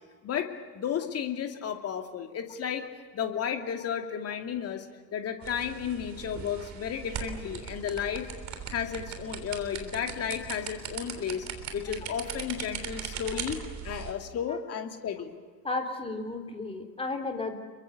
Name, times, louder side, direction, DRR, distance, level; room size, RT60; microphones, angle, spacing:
voice 1, 0.2-2.9 3.1-4.9 5.1-8.3 8.7-11.5 11.7-15.3, left 8 dB, 30° left, 5 dB, 2.6 m, -33 dB
sound 1, 5.4-14.1, right 7 dB, 35° right, 3.5 m, -39 dB
voice 2, 15.6-17.6, left 3 dB, 10° left, 4 dB, 3.4 m, -33 dB
28.5 x 23.5 x 6.9 m, 1.5 s
figure-of-eight pair, 85°, 50 cm